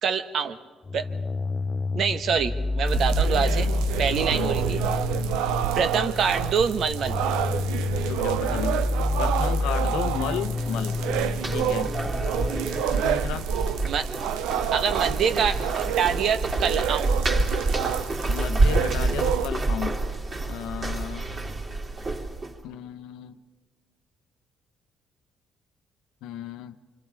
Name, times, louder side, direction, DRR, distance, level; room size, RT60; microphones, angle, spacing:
voice 1, 0.0-0.6 0.9-1.1 1.9-3.7 4.0-4.8 5.7-7.2 12.0-12.2 13.8-14.1 14.7-17.1, right 6 dB, 65° right, 9 dB, 1.3 m, -25 dB
Heavy Bass-Middle, 0.8-12.8, left 3 dB, 30° left, 0.6 m, -29 dB
sound 1, 2.9-19.5, right 11 dB, 90° right, 0.6 m, -29 dB
voice 2, 8.0-8.8 9.2-11.0 11.5-12.0 12.9-13.5 18.3-20.0 20.5-21.3 22.6-23.4 26.2-26.8, left 9 dB, 85° left, 11 dB, 0.9 m, -33 dB
sound 2, 10.6-22.6, right 2 dB, 40° right, 2.9 m, -28 dB
27.5 x 25.5 x 4.8 m, 1.5 s
supercardioid pair, 75°, 0 cm